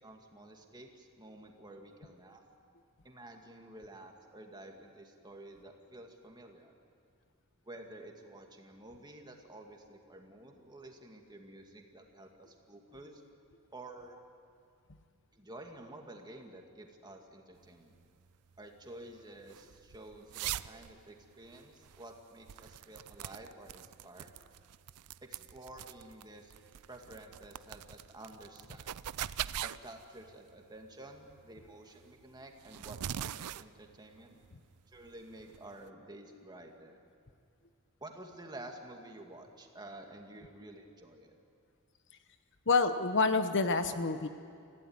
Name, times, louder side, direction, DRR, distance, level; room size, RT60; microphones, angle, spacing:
voice 1, 0.0-2.4 3.0-6.7 7.7-13.2 13.7-14.2 15.3-17.9 18.6-24.3 25.2-26.5 26.9-29.0 29.6-34.4 34.9-37.0 38.0-41.3, right 1 dB, 20° right, 2 dB, 2.3 m, -51 dB
sound 1, 17.6-35.9, right 11 dB, 85° right, 0.5 m, -44 dB
voice 2, 42.7-44.3, left 4 dB, 55° left, 9 dB, 1.0 m, -27 dB
26.0 x 16.0 x 9.7 m, 2.3 s
head